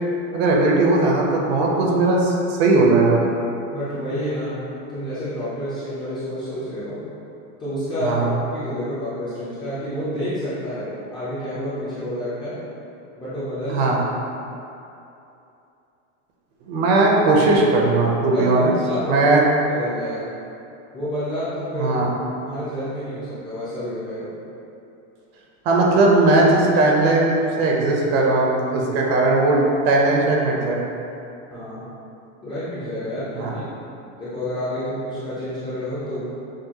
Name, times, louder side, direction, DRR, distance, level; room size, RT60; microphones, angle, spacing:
voice 1, 0.3-3.2 8.0-8.3 13.7-14.0 16.7-18.7 19.1-19.4 21.7-22.1 25.6-29.6 29.8-30.8 33.3-33.6, right 2 dB, 50° right, -2 dB, 0.7 m, -18 dB
voice 2, 3.7-7.0 7.6-12.6 13.2-13.9 18.3-19.3 19.7-20.3 20.9-22.0 22.4-24.3 31.5-31.9 32.4-33.6 34.2-36.3, equal, 10° left, -13 dB, 0.4 m, -29 dB
6.2 x 2.3 x 2.8 m, 2.8 s
supercardioid pair, 165°, 40 cm